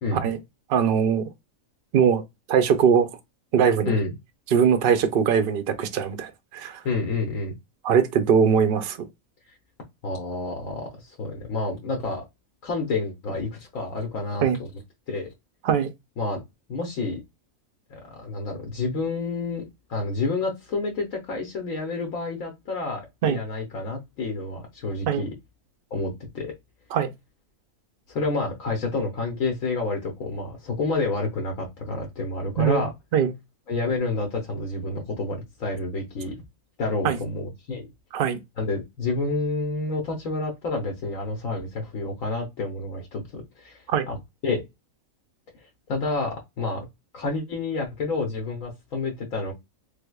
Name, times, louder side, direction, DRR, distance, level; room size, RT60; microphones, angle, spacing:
voice 1, 0.7-1.3 1.9-2.2 2.5-3.1 3.5-4.0 4.5-6.8 7.8-9.0 14.4-14.6 15.6-15.9 23.2-23.4 25.1-25.2 26.9-27.1 32.6-32.9 33.1-33.3 37.0-37.2 38.1-38.4 43.9-44.1, right 7 dB, 60° right, 0.6 m, -21 dB
voice 2, 6.8-7.5 10.0-12.2 12.6-14.4 15.1-15.3 16.2-16.4 16.7-17.2 17.9-19.6 19.9-25.3 25.9-26.5 28.1-32.9 33.7-36.3 36.8-37.9 38.6-44.2 44.4-44.6 45.9-46.8 47.1-49.5, left 3 dB, 75° left, 1.3 m, -29 dB
3.4 x 3.3 x 2.2 m
omnidirectional pair, 1.4 m